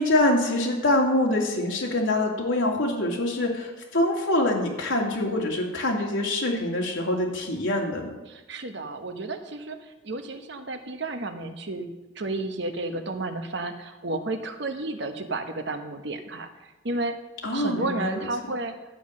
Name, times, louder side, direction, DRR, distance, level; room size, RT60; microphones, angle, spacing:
voice 1, 0.0-8.1 17.4-18.3, left 1 dB, 80° left, -2 dB, 2.4 m, -25 dB
voice 2, 8.3-17.2 17.5-19.0, right 2 dB, 60° right, 7 dB, 1.1 m, -32 dB
11.5 x 7.9 x 6.4 m, 1.1 s
head